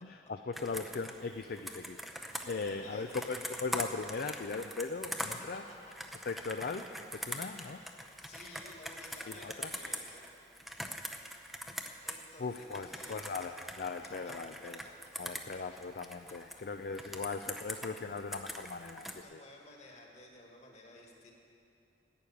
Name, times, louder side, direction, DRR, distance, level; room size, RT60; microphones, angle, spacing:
voice 1, 0.0-5.6 6.3-6.9 7.1-7.8 9.3-9.7 12.4-19.4, left 4 dB, 55° left, 6 dB, 0.4 m, -39 dB
Computer keyboard, 0.5-12.3 12.5-16.6 16.9-19.2, equal, ahead, 0.6 m, -42 dB
voice 2, 2.4-3.3 5.2-5.5 7.2-7.6 8.2-10.3 12.0-13.5 14.8-14.9 17.5-17.7 19.2-21.3, left 2 dB, 40° left, 0 dB, 1.8 m, -54 dB
11.5 x 9.3 x 8.6 m, 2.7 s
head